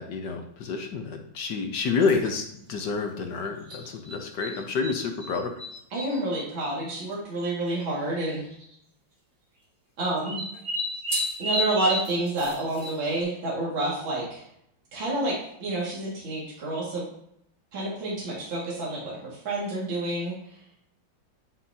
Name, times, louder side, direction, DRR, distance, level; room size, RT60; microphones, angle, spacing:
voice 1, 0.0-5.5, left 4 dB, 60° left, 4 dB, 1.5 m, -29 dB
sound 1, 2.0-2.3 3.7-4.9 5.2-6.2 7.1-7.2 7.4-7.5 8.4-8.7 10.0-13.2, equal, 55° right, 3.2 m, -32 dB
voice 2, 5.9-8.5 10.0-10.4 11.4-14.5 14.9-17.1 17.7-20.3, right 2 dB, 70° right, -6 dB, 3.0 m, -29 dB
11.0 x 5.8 x 2.8 m, 0.74 s
omnidirectional pair, 2.2 m